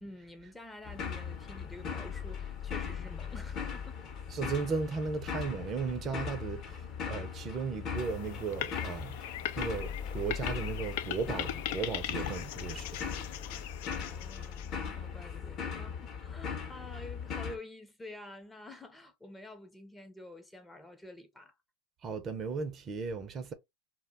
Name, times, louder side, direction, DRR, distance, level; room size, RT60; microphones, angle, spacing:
voice 1, 0.0-4.0 13.8-21.6, left 2 dB, 10° left, 0.6 m, -49 dB
sound 1, 0.8-17.6, left 6 dB, 40° left, 0.8 m, -39 dB
voice 2, 4.3-6.8 7.1-9.2 9.6-13.1 22.0-23.5, right 5 dB, 35° right, 0.5 m, -36 dB
sound 2, 8.0-14.9, left 12 dB, 65° left, 0.3 m, -40 dB
2.3 x 2.1 x 3.4 m
hypercardioid pair, 100°, 0 cm